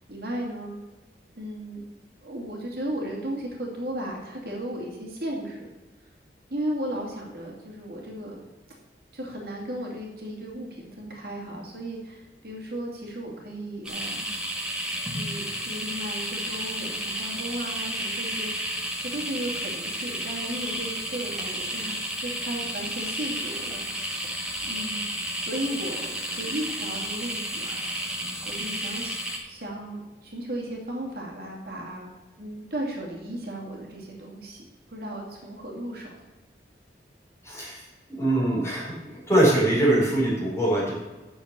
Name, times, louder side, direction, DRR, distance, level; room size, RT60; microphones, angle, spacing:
voice 1, 0.1-0.7 1.4-1.8 2.2-5.7 6.5-8.4 9.1-14.3 15.0-23.8 24.2-24.4 24.6-25.0 25.4-28.1 28.4-32.1 32.4-34.6 34.9-36.1, right 1 dB, 55° right, -2 dB, 2.5 m, -35 dB
sound 1, 13.8-29.4, equal, 5° right, 1.6 m, -32 dB
voice 2, 37.4-37.8 38.1-40.9, right 1 dB, 15° left, -6 dB, 4.1 m, -23 dB
10.0 x 6.8 x 6.7 m, 1.2 s
head